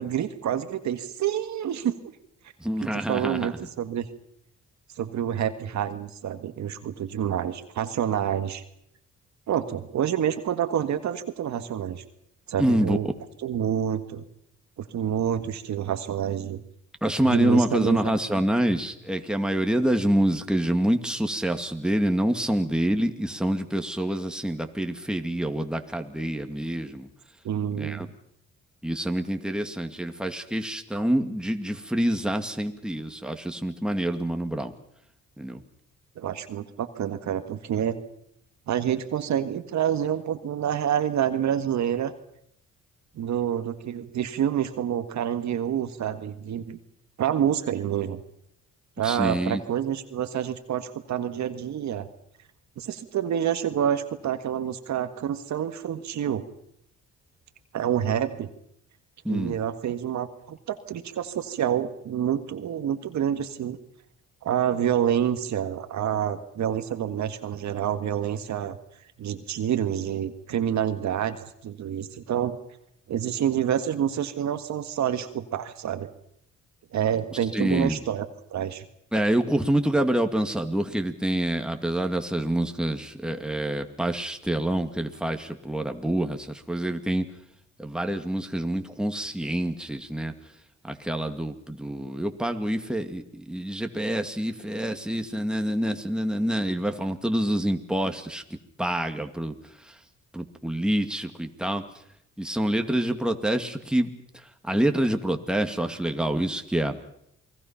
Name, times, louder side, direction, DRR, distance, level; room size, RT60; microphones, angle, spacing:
voice 1, 0.0-2.1 2.8-4.1 5.0-8.6 9.5-12.0 12.5-13.1 13.4-14.2 14.8-16.6 17.2-18.0 27.4-28.1 36.2-38.0 38.7-42.1 43.2-46.8 47.2-48.2 49.0-52.1 52.8-56.5 57.7-58.5 59.3-63.8 64.4-68.8 69.2-71.4 71.6-72.6 73.1-76.1 76.9-78.3 78.5-78.9, right 9 dB, 65° right, 9 dB, 1.7 m, -28 dB
voice 2, 2.6-3.6 12.6-13.0 17.0-27.1 27.7-28.1 28.8-34.7 35.4-35.6 49.0-49.6 59.2-59.6 77.5-78.0 79.1-87.3 87.8-90.3 90.8-98.4 98.8-99.5 99.9-100.0 100.3-101.8 102.4-104.1 104.6-107.0, right 1 dB, 5° right, 5 dB, 2.2 m, -26 dB
29.0 x 20.5 x 5.8 m, 0.73 s
cardioid pair, 90°, 30 cm